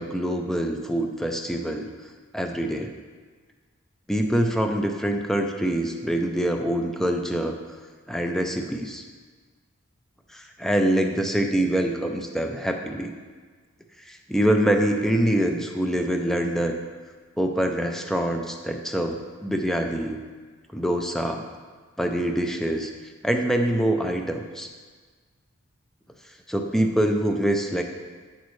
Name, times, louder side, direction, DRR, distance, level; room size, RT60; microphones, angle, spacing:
voice 1, 0.0-1.9 2.3-2.9 4.1-7.6 8.1-9.0 10.3-13.1 14.1-16.8 17.4-20.2 20.7-21.5 22.0-22.9 23.2-24.7 26.5-27.8, right 1 dB, ahead, 4 dB, 0.4 m, -25 dB
8.0 x 6.2 x 3.1 m, 1.5 s
head